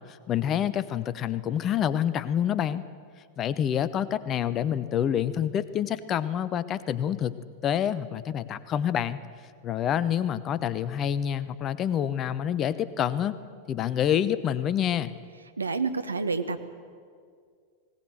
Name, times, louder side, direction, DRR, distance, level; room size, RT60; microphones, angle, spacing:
voice 1, 0.3-2.8 3.4-7.3 7.6-9.2 9.6-13.4 13.7-15.2, left 9 dB, 30° left, 16 dB, 0.8 m, -27 dB
voice 2, 15.6-16.6, right 4 dB, 75° right, 9 dB, 1.1 m, -28 dB
20.0 x 18.0 x 8.0 m, 2.1 s
figure-of-eight pair, 90°, 0 cm